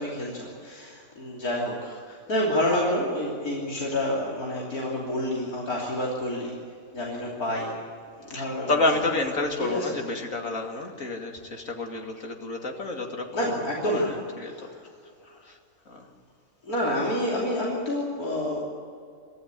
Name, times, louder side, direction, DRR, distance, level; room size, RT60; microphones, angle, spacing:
voice 1, 0.0-6.6 6.9-7.8 8.2-8.7 9.6-9.9 13.3-14.2 14.5-14.8 16.6-18.6, left 1 dB, 90° left, -4 dB, 3.6 m, -28 dB
voice 2, 8.3-13.5 13.8-14.7 15.4-15.6 15.9-16.1, left 3 dB, 65° left, 2 dB, 2.9 m, -29 dB
24.0 x 15.0 x 8.4 m, 2.3 s
omnidirectional pair, 1.5 m